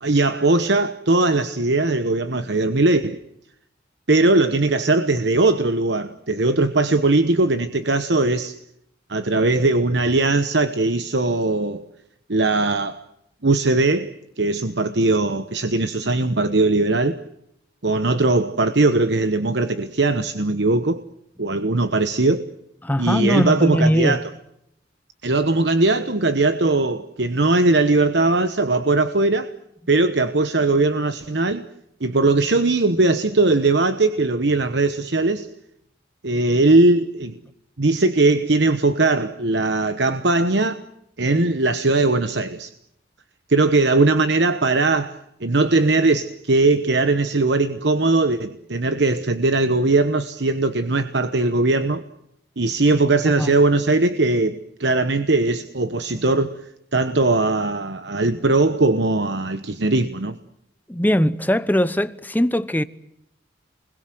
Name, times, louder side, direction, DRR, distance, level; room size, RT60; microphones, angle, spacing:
voice 1, 0.0-3.2 4.1-8.6 9.1-11.8 12.3-13.0 13.4-17.2 17.8-21.0 21.4-22.5 23.0-24.2 25.2-29.5 29.9-31.6 32.0-35.5 36.2-37.3 37.8-40.8 41.2-42.7 43.5-52.0 52.6-56.6 56.9-60.4, right 2 dB, 65° right, 1.1 m, -19 dB
voice 2, 22.8-24.2 53.4-53.5 60.9-62.8, equal, 10° left, 0.9 m, -20 dB
29.0 x 21.5 x 7.8 m
head